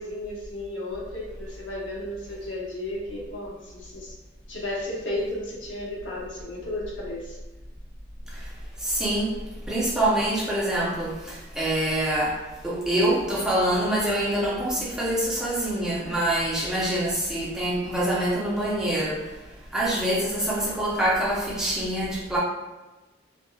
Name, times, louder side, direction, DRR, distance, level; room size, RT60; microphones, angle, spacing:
voice 1, 0.0-4.1 4.5-7.4, left 1 dB, 80° left, -4 dB, 1.0 m, -33 dB
voice 2, 8.8-9.3 9.7-12.4 12.6-19.2 19.7-22.4, right 1 dB, 5° right, -6 dB, 0.7 m, -25 dB
3.9 x 2.3 x 2.3 m, 1.1 s
head